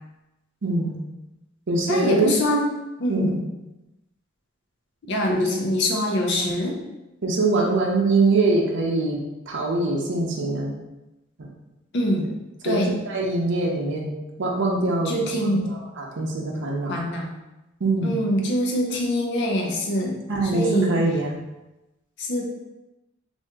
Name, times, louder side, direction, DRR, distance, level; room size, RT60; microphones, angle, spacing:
voice 1, 0.6-0.9 1.7-2.3 3.1-3.4 5.3-5.5 6.3-6.4 7.2-9.2 9.5-10.7 11.4-11.5 12.6-14.1 14.4-16.9 17.8-18.2 20.3-21.4, right 2 dB, 60° right, -1 dB, 0.6 m, -23 dB
voice 2, 1.9-2.7 3.0-3.4 5.1-6.8 11.9-12.3 12.6-12.9 15.1-15.7 16.9-17.3 18.0-20.2 20.4-20.9 22.2-22.4, equal, 60° left, 1 dB, 0.6 m, -24 dB
2.8 x 2.5 x 3.4 m, 0.98 s
head